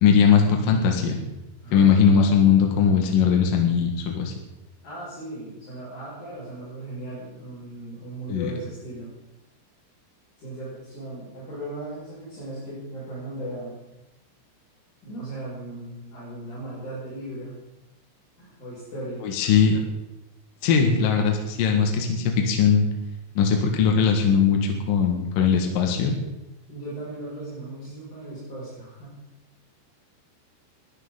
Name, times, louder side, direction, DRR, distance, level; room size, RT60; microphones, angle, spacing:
voice 1, 0.0-1.2 1.7-4.3 8.3-8.5 19.2-19.8 20.6-22.9 23.4-26.1, left 6 dB, 60° left, 2 dB, 2.8 m, -20 dB
voice 2, 1.6-2.1 4.8-9.1 10.4-13.8 15.0-17.6 18.4-19.3 26.7-29.2, right 1 dB, 40° left, -9 dB, 7.0 m, -37 dB
21.0 x 13.5 x 3.8 m, 0.95 s
omnidirectional pair, 5.3 m